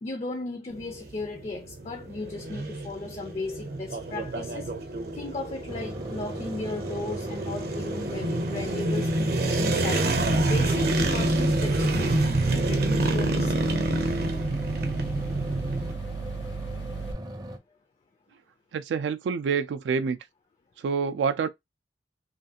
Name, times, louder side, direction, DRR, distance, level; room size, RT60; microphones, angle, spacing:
voice 1, 0.0-4.7 5.1-13.5, left 2 dB, 35° left, 0.3 m, -36 dB
sound 1, 0.7-15.9, right 1 dB, 60° right, 0.7 m, -27 dB
sound 2, 5.7-17.6, right 1 dB, 20° right, 0.5 m, -38 dB
Mechanical fan, 10.1-17.1, right 5 dB, 80° left, 0.6 m, -36 dB
voice 2, 18.7-20.2 20.8-21.5, right 6 dB, 80° right, 0.3 m, -27 dB
3.1 x 2.4 x 2.7 m
head